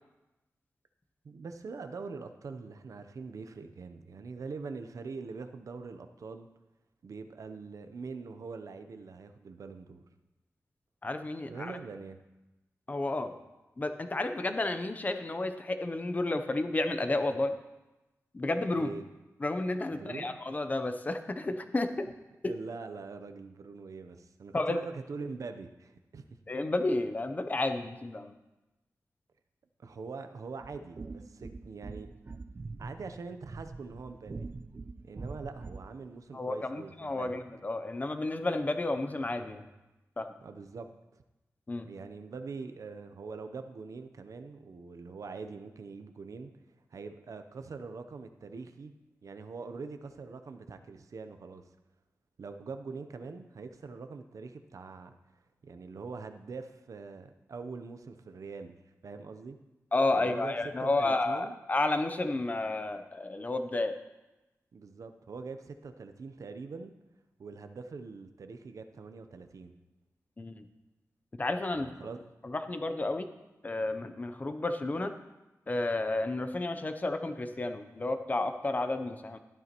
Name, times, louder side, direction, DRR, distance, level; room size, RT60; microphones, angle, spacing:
voice 1, 1.2-6.5 7.0-10.0 11.5-12.2 18.7-19.0 19.9-20.4 22.4-26.2 29.8-32.1 32.8-34.5 35.0-37.4 40.4-40.9 41.8-46.5 46.9-48.9 49.2-51.6 52.4-55.1 55.6-58.8 59.0-59.6 60.1-61.6 64.7-66.9 67.4-69.7 71.7-72.2, right 4 dB, 70° right, 8 dB, 0.7 m, -43 dB
voice 2, 11.0-11.8 12.9-13.3 13.8-17.6 18.3-18.9 19.4-22.1 22.4-22.5 24.5-24.8 26.5-28.3 36.3-39.7 40.2-40.3 41.7-41.9 59.9-63.9 70.4-70.7 71.4-71.9 72.4-73.3 73.6-75.1 75.7-79.4, left 2 dB, 30° left, 8 dB, 0.7 m, -31 dB
sound 1, 30.6-36.0, right 3 dB, 35° right, 0.4 m, -44 dB
12.0 x 11.0 x 3.0 m, 1.0 s
wide cardioid pair, 135°, 6 cm